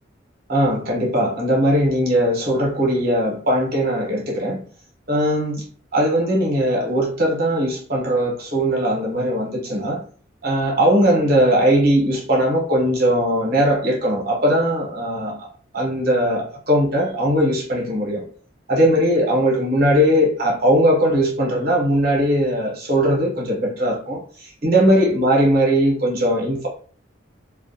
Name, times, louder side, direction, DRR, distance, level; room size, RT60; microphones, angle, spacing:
voice 1, 0.5-4.6 5.1-5.7 5.9-10.0 10.4-15.4 15.7-18.3 18.7-26.7, equal, 50° right, -2 dB, 0.8 m, -19 dB
2.3 x 2.1 x 2.6 m, 0.44 s
head